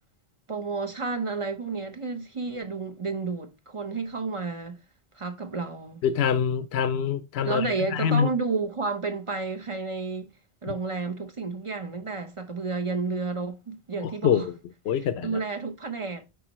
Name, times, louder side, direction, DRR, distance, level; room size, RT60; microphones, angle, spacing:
voice 1, 0.5-4.8 5.1-6.0 7.4-10.3 10.6-14.5 15.2-16.2, right 4 dB, 35° right, 0.9 m, -31 dB
voice 2, 6.0-8.3 14.0-14.5 14.8-15.4, left 8 dB, 85° left, 0.9 m, -25 dB
8.3 x 5.3 x 3.0 m
omnidirectional pair, 1.0 m